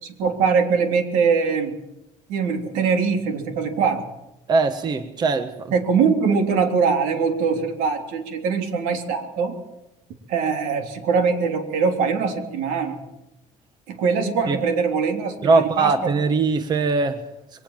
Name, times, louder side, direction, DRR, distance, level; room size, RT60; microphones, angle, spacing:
voice 1, 0.0-1.8 2.3-4.0 5.7-9.6 10.3-13.0 13.9-16.1, right 5 dB, 80° right, 5 dB, 3.4 m, -22 dB
voice 2, 4.5-5.7 14.5-14.6 15.4-17.2, right 4 dB, 30° right, 10 dB, 1.3 m, -21 dB
22.5 x 18.5 x 7.6 m, 0.89 s
cardioid pair, 145°, 13 cm